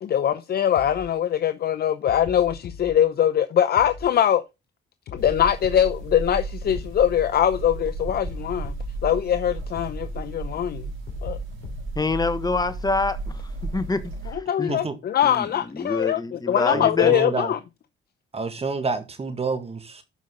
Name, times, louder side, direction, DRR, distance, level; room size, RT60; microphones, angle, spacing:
voice 1, 0.0-4.4 5.1-8.7 9.0-10.9 11.2-11.4 14.3-17.6, left 10 dB, 50° left, 0.7 m, -22 dB
sound 1, 0.8-1.1 2.1-2.9 3.8-4.1 5.1-6.0 6.8-7.1 8.1-9.0 9.8-10.1 11.1-12.0, left 5 dB, 80° left, 3.9 m, -39 dB
sound 2, 5.2-14.3, right 2 dB, 75° right, 4.6 m, -34 dB
voice 2, 11.9-13.4 13.7-14.8 15.2-17.1, left 3 dB, 20° left, 1.4 m, -26 dB
voice 3, 16.7-17.5 18.3-20.0, right 4 dB, 30° right, 1.9 m, -28 dB
12.0 x 5.3 x 3.8 m
cardioid pair, 90°, 20 cm